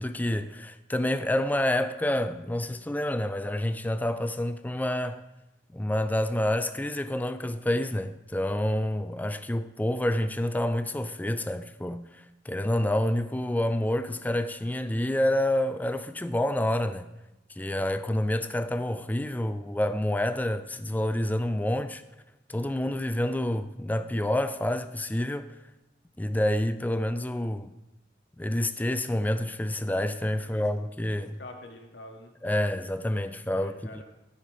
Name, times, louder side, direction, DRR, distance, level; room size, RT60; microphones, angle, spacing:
voice 1, 0.0-5.2 5.7-12.1 12.5-17.1 17.6-22.0 22.5-25.5 26.2-27.7 28.4-31.4 32.4-33.9, left 1 dB, 10° left, 0.4 m, -28 dB
voice 2, 30.4-30.7 31.1-32.3 33.5-34.0, left 1 dB, 65° left, 1.2 m, -46 dB
12.0 x 5.7 x 4.9 m
head